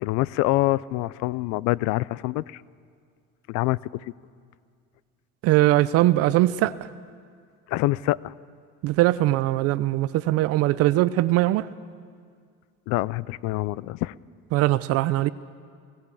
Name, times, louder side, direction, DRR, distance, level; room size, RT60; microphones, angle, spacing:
voice 1, 0.0-2.6 3.5-4.1 7.7-8.3 12.9-14.1, left 18 dB, 65° left, 21 dB, 0.4 m, -25 dB
voice 2, 5.4-6.8 8.8-11.7 14.5-15.3, right 16 dB, 55° right, 15 dB, 0.5 m, -21 dB
17.5 x 17.5 x 8.4 m, 2.1 s
cardioid pair, 160°, 30 cm